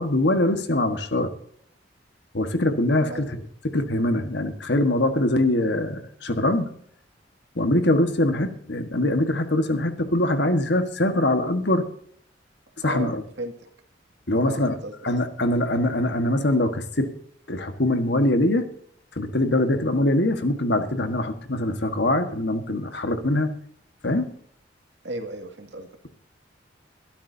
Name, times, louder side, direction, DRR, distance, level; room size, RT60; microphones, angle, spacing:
voice 1, 0.0-1.3 2.3-3.4 3.7-6.7 7.5-11.9 12.8-13.2 14.3-14.8 15.0-17.1 17.5-18.7 19.2-23.5 24.0-24.3, left 1 dB, 60° left, 7 dB, 1.5 m, -23 dB
voice 2, 12.8-13.5 14.4-15.0 25.0-25.9, right 1 dB, 70° right, 4 dB, 2.2 m, -34 dB
23.0 x 12.5 x 2.8 m, 0.63 s
head